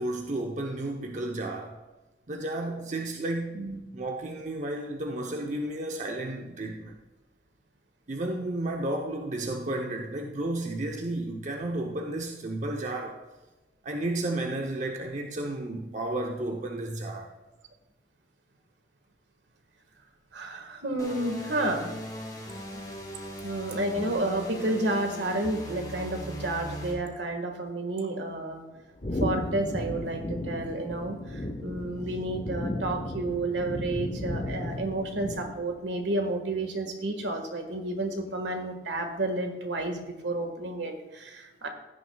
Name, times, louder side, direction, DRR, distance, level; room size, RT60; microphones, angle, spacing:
voice 1, 0.0-1.8 2.3-3.7 3.9-7.0 8.1-13.2 13.8-17.3, right 1 dB, 45° right, 0.8 m, -32 dB
voice 2, 20.3-21.9 22.7-22.8 23.4-28.6 29.2-41.7, right 2 dB, 75° right, 1.6 m, -31 dB
sound 1, 21.0-26.9, equal, 20° left, 3.7 m, -39 dB
sound 2, 29.0-35.8, left 1 dB, 35° left, 1.1 m, -34 dB
15.5 x 9.9 x 2.3 m
head